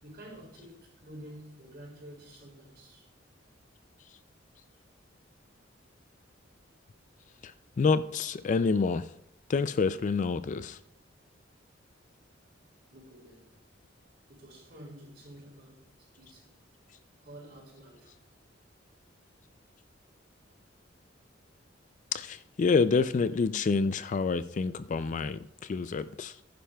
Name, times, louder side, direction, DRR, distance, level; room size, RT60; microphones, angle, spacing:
voice 1, 0.0-3.1 12.9-13.5 14.3-16.8 17.2-18.3, right 1 dB, 60° right, 4.5 m, -50 dB
voice 2, 7.8-9.0 9.5-10.7 22.1-25.4 25.7-26.3, left 4 dB, 40° left, 0.3 m, -27 dB
14.5 x 10.5 x 2.3 m
head